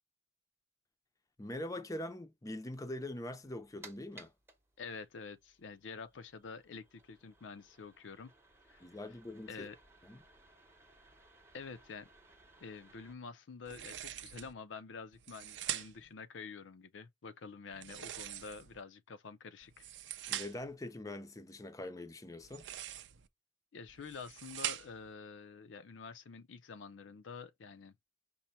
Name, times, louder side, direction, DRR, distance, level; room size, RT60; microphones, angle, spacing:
voice 1, 1.4-4.3 8.8-9.7 10.0-10.2 20.3-22.7, left 1 dB, 20° left, 0.5 m, -43 dB
sound 1, 3.4-13.1, right 2 dB, 15° right, 0.8 m, -61 dB
voice 2, 4.8-8.3 8.7-8.8 9.5-9.8 11.5-12.1 12.6-19.9 23.7-27.9, left 5 dB, 80° left, 0.5 m, -48 dB
sound 2, 13.6-14.5 15.1-16.1 17.7-18.8 19.6-20.7 22.4-23.3 23.9-25.1, right 11 dB, 70° right, 0.5 m, -43 dB
5.4 x 2.1 x 4.2 m
head